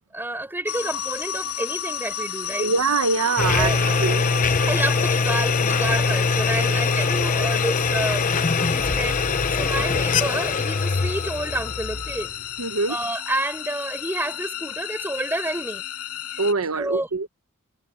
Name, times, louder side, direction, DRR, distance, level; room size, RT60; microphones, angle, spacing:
voice 1, 0.1-2.7 3.5-3.8 4.7-8.2 8.7-9.2 9.5-12.3 12.9-15.8 16.7-17.1, right 1 dB, 10° right, 4.4 m, -29 dB
sound 1, 0.7-16.5, left 9 dB, 85° left, 2.3 m, -33 dB
voice 2, 2.6-3.7 4.0-4.3 12.6-13.0 16.4-17.3, right 4 dB, 80° right, 0.9 m, -23 dB
sound 2, 3.0-7.2, right 5 dB, 50° right, 3.2 m, -42 dB
sound 3, 3.4-12.5, left 4 dB, 40° left, 0.7 m, -23 dB
head